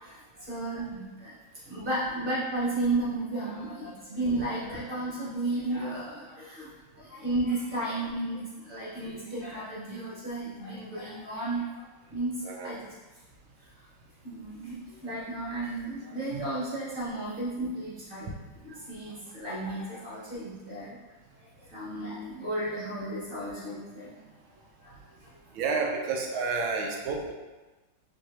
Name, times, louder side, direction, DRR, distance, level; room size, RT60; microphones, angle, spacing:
voice 1, 0.0-1.3 1.7-11.8 12.1-12.3 12.6-12.9 14.2-14.8 15.0-18.3 18.6-20.9 21.7-24.1 24.8-24.9, right 2 dB, 30° right, -8 dB, 1.2 m, -33 dB
voice 2, 18.3-18.8 23.6-23.7 25.5-27.3, right 4 dB, 80° right, 1 dB, 1.4 m, -32 dB
5.3 x 3.2 x 2.8 m, 1.2 s
omnidirectional pair, 2.3 m